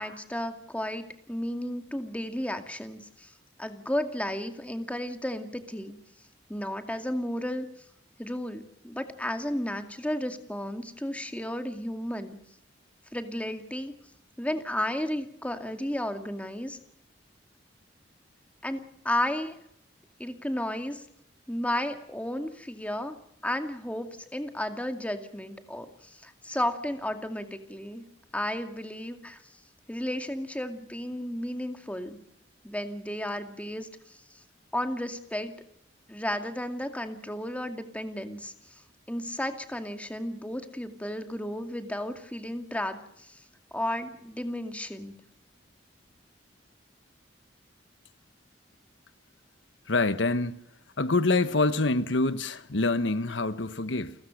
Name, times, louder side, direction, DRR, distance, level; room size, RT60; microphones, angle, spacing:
voice 1, 0.0-3.3 3.6-6.0 6.5-7.7 8.2-12.4 13.1-13.9 14.4-16.8 18.6-19.6 20.2-21.0 21.5-23.2 23.4-28.0 28.3-29.4 29.9-32.2 32.6-33.9 34.7-35.5 36.1-38.5 39.1-43.4 43.7-45.1, left 1 dB, 10° left, 2.3 m, -33 dB
voice 2, 49.9-50.6 51.0-54.1, left 3 dB, 85° left, 1.3 m, -26 dB
30.0 x 14.5 x 6.6 m
head